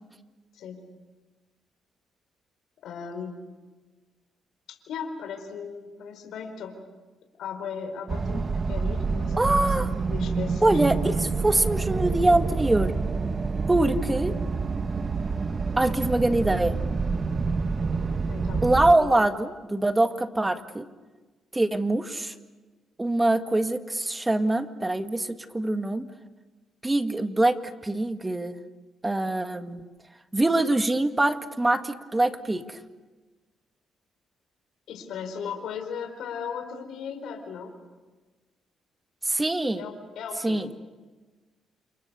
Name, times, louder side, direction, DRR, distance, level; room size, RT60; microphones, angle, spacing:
voice 1, 2.8-3.4 4.7-6.7 7.4-10.8 18.3-18.6 19.0-19.1 34.9-37.7 39.7-40.7, left 6 dB, 75° left, 5 dB, 4.7 m, -37 dB
sound 1, 8.1-18.9, right 4 dB, 35° right, 1.2 m, -27 dB
voice 2, 9.4-9.9 10.6-12.9 13.7-14.3 15.8-16.8 18.6-20.9 21.5-22.3 23.0-26.1 26.8-27.6 27.8-28.6 29.0-29.9 30.3-32.8 39.3-39.8 40.4-40.7, right 2 dB, 15° right, 8 dB, 1.8 m, -24 dB
29.5 x 28.5 x 7.0 m, 1.3 s
cardioid pair, 90°, 0 cm